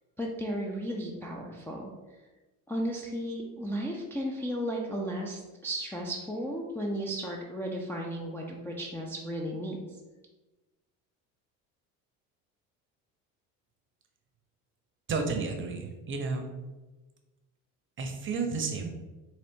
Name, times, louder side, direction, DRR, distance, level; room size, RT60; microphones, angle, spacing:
voice 1, 0.2-1.9 2.7-10.0, equal, 5° left, -3 dB, 0.4 m, -34 dB
voice 2, 15.1-16.5 18.0-18.9, right 4 dB, 35° right, 4 dB, 0.7 m, -32 dB
3.8 x 2.5 x 3.5 m, 1.2 s
supercardioid pair, 95°, 36 cm